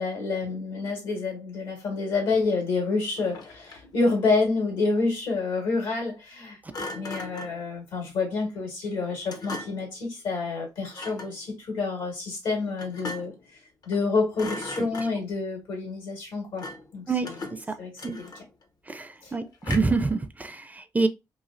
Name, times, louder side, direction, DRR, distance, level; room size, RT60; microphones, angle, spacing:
voice 1, 0.0-6.6 6.9-13.3 13.9-16.7 16.9-17.4 17.8-18.3 19.2-19.3, left 3 dB, 90° left, 1.8 m, -28 dB
Thump thud, 3.2-4.0 6.7-7.6 9.3-9.9 10.9-11.4 12.8-13.5 13.8-14.1 14.3-15.4 16.6-16.9 17.2-18.6 19.6-20.1, left 2 dB, 60° left, 0.6 m, -38 dB
voice 2, 17.1-18.2 18.9-21.1, right 3 dB, 20° right, 0.4 m, -27 dB
3.1 x 2.4 x 2.5 m
cardioid pair, 65°, 7 cm